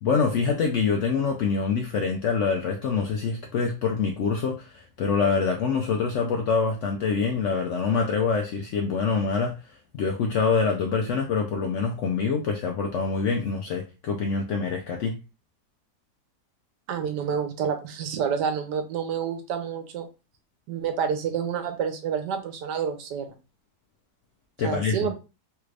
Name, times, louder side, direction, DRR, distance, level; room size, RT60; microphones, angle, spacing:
voice 1, 0.0-9.6 9.9-15.2 24.6-25.1, left 5 dB, 75° left, 2 dB, 0.7 m, -25 dB
voice 2, 16.9-20.1 20.7-23.3 24.6-25.1, right 7 dB, 85° right, 6 dB, 1.3 m, -28 dB
3.3 x 2.4 x 3.2 m, 0.30 s
omnidirectional pair, 1.7 m